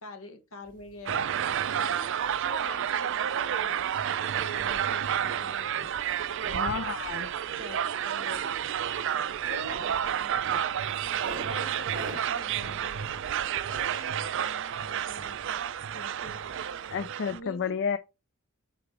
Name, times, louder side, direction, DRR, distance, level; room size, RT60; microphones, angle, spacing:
voice 1, 0.0-1.3 1.7-2.1 2.4-3.9 4.3-5.8 6.5-6.7 7.6-8.5 9.1-10.4 11.5-13.1 13.7-15.6 15.9-16.4 17.3-17.7, left 3 dB, 75° left, 1.4 m, -46 dB
sound 1, 0.6-17.1, right 2 dB, 40° right, 1.4 m, -50 dB
sound 2, 1.1-17.4, right 9 dB, 60° right, 0.4 m, -30 dB
voice 2, 6.5-7.3 16.9-18.0, left 6 dB, 55° left, 0.4 m, -31 dB
6.9 x 4.6 x 3.2 m
head